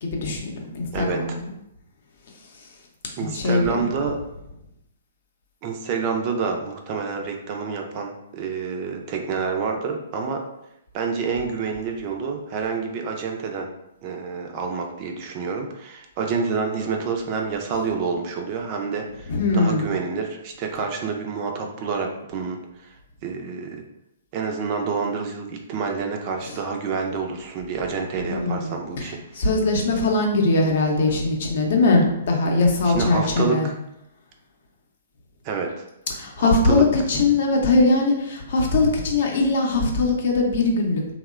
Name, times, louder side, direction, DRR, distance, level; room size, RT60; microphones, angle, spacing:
voice 1, 0.0-1.4 3.2-3.7 19.3-19.8 26.4-26.5 28.2-29.1 29.4-33.7 36.1-41.1, left 3 dB, 60° left, 1 dB, 0.6 m, -21 dB
voice 2, 0.9-1.3 3.2-4.2 5.6-10.4 10.9-13.7 14.0-23.0 23.2-23.8 24.3-29.5 32.8-33.7 35.4-35.8 36.4-36.8, right 5 dB, 40° right, 3 dB, 0.4 m, -28 dB
2.8 x 2.0 x 2.4 m, 0.83 s
hypercardioid pair, 125°, 0 cm